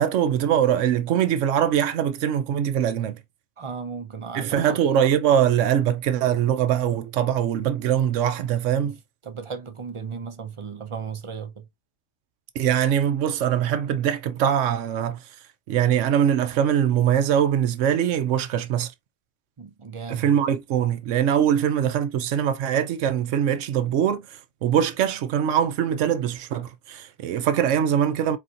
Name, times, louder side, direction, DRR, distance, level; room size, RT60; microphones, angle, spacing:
voice 1, 0.0-3.2 4.3-9.0 12.5-15.2 15.7-18.9 20.1-28.4, right 9 dB, 90° right, 1.0 m, -22 dB
voice 2, 3.6-4.8 8.8-9.0 9.2-11.7 19.6-20.3, right 6 dB, 30° right, 0.6 m, -35 dB
4.4 x 4.2 x 2.5 m
omnidirectional pair, 1.2 m